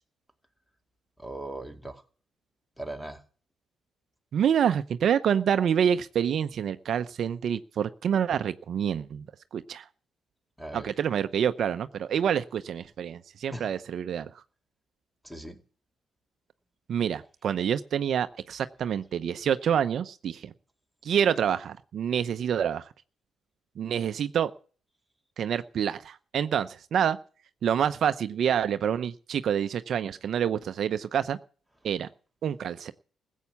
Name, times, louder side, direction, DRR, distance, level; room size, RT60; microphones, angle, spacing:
voice 1, 1.2-2.0 2.8-3.2 10.6-10.9 13.5-13.7 15.2-15.6, right 1 dB, ahead, 6 dB, 2.3 m, -38 dB
voice 2, 4.3-9.2 9.5-9.9 10.7-14.4 16.9-20.5 21.0-22.9 23.8-24.5 25.4-27.2 27.6-31.4 31.8-32.1 32.4-32.9, right 8 dB, 65° right, 11 dB, 0.7 m, -27 dB
15.5 x 8.3 x 7.1 m, 0.40 s
cardioid pair, 90°, 0 cm